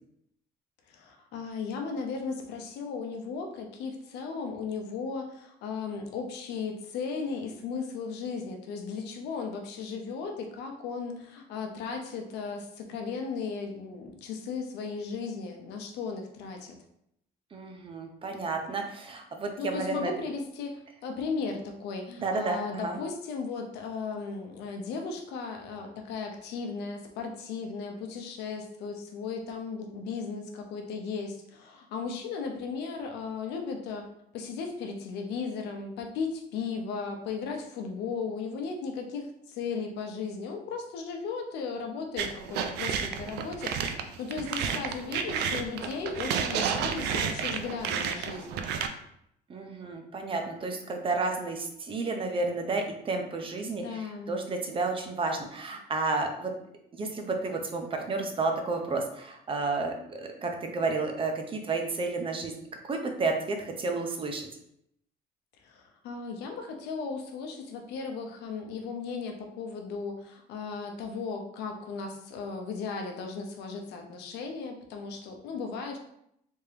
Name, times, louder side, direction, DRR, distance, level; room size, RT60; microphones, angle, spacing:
voice 1, 0.9-16.7 19.6-34.1 34.3-43.8 44.2-48.6 53.7-54.3 65.6-76.0, left 5 dB, 85° left, 3 dB, 0.7 m, -36 dB
voice 2, 17.5-20.1 22.2-23.0 49.5-56.5 56.9-62.5 62.9-64.5, right 3 dB, 30° right, 3 dB, 0.7 m, -31 dB
sound 1, 42.2-48.9, right 7 dB, 80° right, 0.4 m, -31 dB
3.5 x 3.3 x 2.8 m, 0.75 s
cardioid pair, 110°, 17 cm